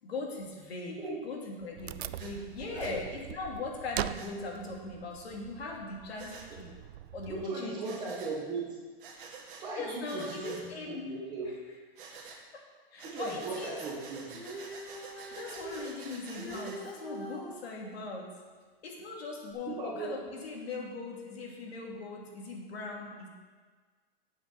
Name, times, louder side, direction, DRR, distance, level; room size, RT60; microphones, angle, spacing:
voice 1, 0.0-1.0 1.2-6.8 7.1-7.9 9.7-11.1 12.5-12.6 12.9-13.8 15.3-18.3 18.8-23.3, left 3 dB, 85° left, 0 dB, 2.6 m, -40 dB
Wood, 1.8-7.5, right 12 dB, 90° right, 0.5 m, -42 dB
Breathing, 2.2-2.3 2.8-3.0 4.1-4.3 6.2-6.5 7.8-8.3 9.0-9.6 10.0-10.6 12.0-12.4 13.0-16.8, right 5 dB, 60° right, 1.9 m, -48 dB
voice 2, 2.7-3.0 7.2-8.8 9.6-11.5 13.0-14.4 19.7-20.1, right 3 dB, 15° right, -3 dB, 1.2 m, -38 dB
Female singing, 14.3-17.5 19.5-19.6, right 1 dB, 5° left, 0.5 m, -43 dB
8.0 x 6.9 x 6.9 m, 1.5 s
supercardioid pair, 180°, 30 cm